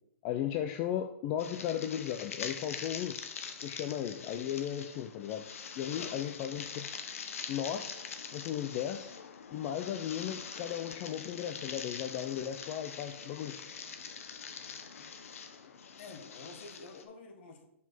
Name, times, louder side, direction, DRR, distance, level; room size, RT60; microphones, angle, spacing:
voice 1, 0.2-3.2 3.6-5.4 5.8-6.8 7.5-8.0 8.3-9.1 9.5-13.6, left 10 dB, 30° left, 6 dB, 0.4 m, -36 dB
sound 1, 1.4-17.0, left 6 dB, 75° left, 1.0 m, -44 dB
voice 2, 5.9-6.4 16.0-17.7, left 4 dB, 50° left, 5 dB, 1.3 m, -49 dB
5.8 x 4.7 x 6.0 m, 0.76 s
hypercardioid pair, 155°, 7 cm